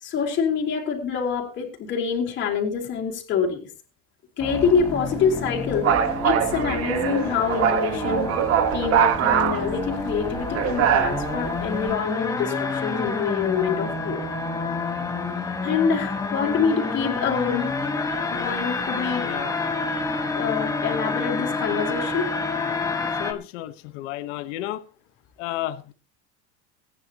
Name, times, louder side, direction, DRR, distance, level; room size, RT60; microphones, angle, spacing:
voice 1, 0.0-3.7 4.4-5.9 6.2-8.3 8.7-14.2 15.6-17.8 18.3-19.3 20.3-22.3, left 6 dB, 30° left, 0 dB, 3.9 m, -26 dB
sound 1, 4.4-23.3, left 3 dB, 10° left, 1.3 m, -29 dB
sound 2, 4.5-11.9, right 9 dB, 40° right, 1.4 m, -24 dB
voice 2, 19.2-19.6 23.2-24.8 25.4-25.9, left 14 dB, 80° left, 10 dB, 1.3 m, -32 dB
23.5 x 10.0 x 3.0 m, 0.33 s
cardioid pair, 165°, 36 cm